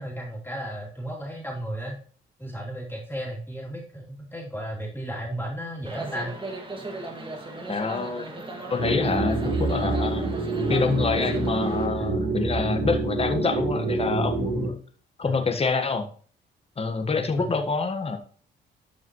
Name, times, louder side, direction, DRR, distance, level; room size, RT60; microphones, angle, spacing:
voice 1, 0.0-2.0 2.4-6.3 12.0-12.2 15.2-15.5 17.3-17.4, equal, 10° left, -4 dB, 3.3 m, -34 dB
sound 1, 5.9-11.9, right 2 dB, 25° right, 2.2 m, -37 dB
voice 2, 7.7-8.2 8.7-10.2 10.7-14.8 15.2-16.1 16.8-18.2, left 4 dB, 30° left, 6 dB, 1.6 m, -26 dB
sound 2, 8.8-14.7, right 3 dB, 75° right, 4.3 m, -27 dB
12.5 x 5.6 x 3.2 m, 0.43 s
cardioid pair, 90°, 20 cm